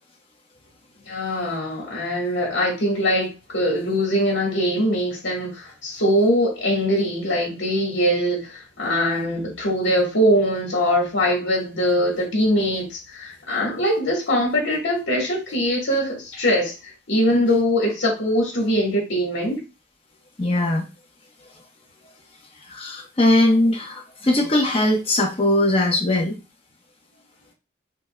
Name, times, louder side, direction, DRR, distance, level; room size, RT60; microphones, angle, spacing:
voice 1, 1.1-16.7 17.1-19.6, equal, 85° left, 1.4 m, -22 dB
voice 2, 20.4-20.8 22.7-26.4, left 1 dB, 30° left, 0.9 m, -20 dB
5.2 x 2.4 x 2.2 m
head